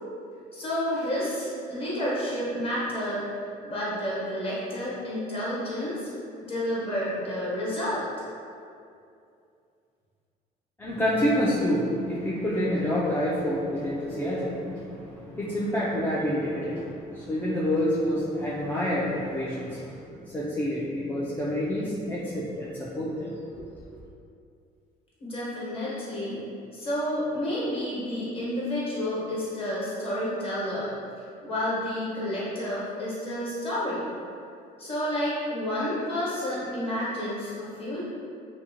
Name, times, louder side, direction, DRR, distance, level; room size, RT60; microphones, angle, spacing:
voice 1, 0.5-3.3 3.6-6.1 6.4-8.0 25.2-26.4 26.7-30.9 31.4-34.1 34.8-38.0, equal, 35° left, -8 dB, 1.0 m, -30 dB
voice 2, 10.8-24.0, equal, 10° left, -8 dB, 0.3 m, -28 dB
2.6 x 2.1 x 2.7 m, 2.5 s
cardioid pair, 110°, 17 cm